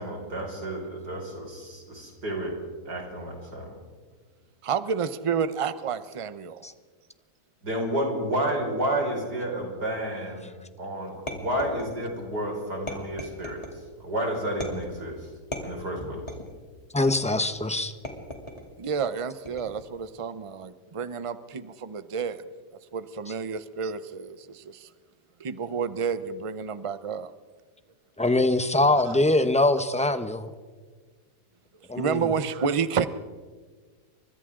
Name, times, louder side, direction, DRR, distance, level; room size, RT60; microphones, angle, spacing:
voice 1, 0.0-2.6 2.9-3.7 7.6-10.5 10.8-13.6 14.0-15.3 15.6-16.2, right 1 dB, 85° right, 0 dB, 6.0 m, -30 dB
voice 2, 4.6-6.7 18.8-22.4 22.9-24.9 25.4-27.3 32.0-33.1, right 6 dB, 35° right, 12 dB, 0.5 m, -30 dB
sound 1, 11.3-12.2 12.9-13.8 14.6-15.0 15.5-16.6 17.1-17.5 18.0-18.7 19.5-19.9, left 1 dB, 20° left, 3.1 m, -38 dB
voice 3, 16.9-17.9 28.2-30.5 31.9-32.3, left 2 dB, 5° left, 9 dB, 0.7 m, -23 dB
30.0 x 25.0 x 3.8 m, 1.5 s
omnidirectional pair, 1.7 m